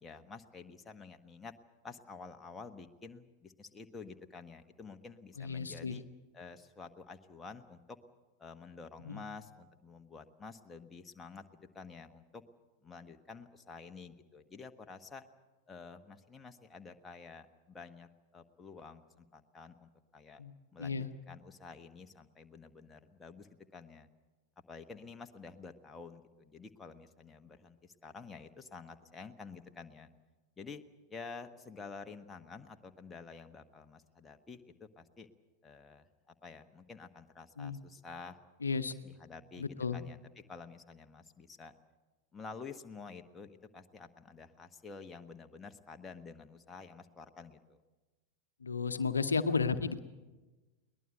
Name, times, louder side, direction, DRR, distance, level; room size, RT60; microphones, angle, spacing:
voice 1, 0.0-1.5 1.8-6.0 6.3-8.0 8.4-12.4 12.8-15.2 15.7-20.4 20.7-24.1 24.7-30.1 30.6-30.8 31.1-35.3 35.6-38.4 38.7-40.2 40.5-41.7 42.3-47.8, left 4 dB, 15° left, 5 dB, 1.3 m, -50 dB
voice 2, 5.4-6.0 9.0-9.2 20.4-20.5 20.8-21.1 37.6-37.8 38.6-38.9 39.6-40.0 48.6-50.0, left 5 dB, 75° left, 10 dB, 0.9 m, -33 dB
22.0 x 19.5 x 8.0 m, 1.2 s
figure-of-eight pair, 90°, 0 cm